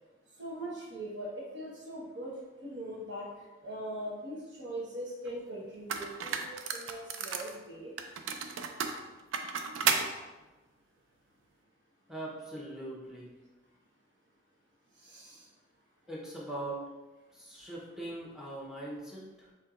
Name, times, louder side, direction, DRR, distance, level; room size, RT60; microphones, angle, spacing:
voice 1, 0.4-2.3 2.6-3.3 3.6-7.9 15.0-15.4, right 1 dB, 60° right, -5 dB, 1.0 m, -41 dB
sound 1, 5.3-5.4 5.9-7.5 8.0-10.1, right 6 dB, 85° right, 0.4 m, -33 dB
voice 2, 12.1-13.3 16.1-16.8 17.3-19.5, right 1 dB, 5° right, -5 dB, 0.8 m, -41 dB
4.4 x 3.5 x 2.4 m, 1.2 s
head